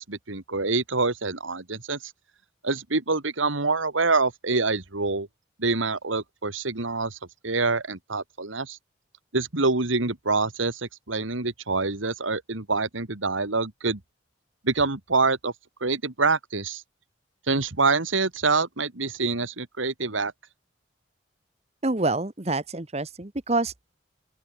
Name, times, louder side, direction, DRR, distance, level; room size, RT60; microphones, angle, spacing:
voice 1, 0.0-2.0 2.6-5.3 5.6-7.2 7.4-8.8 9.3-14.0 14.6-15.5 15.8-16.8 17.5-20.3, right 3 dB, 85° right, 2.2 m, -26 dB
voice 2, 21.8-23.9, right 2 dB, 35° right, 1.1 m, -27 dB
open air
head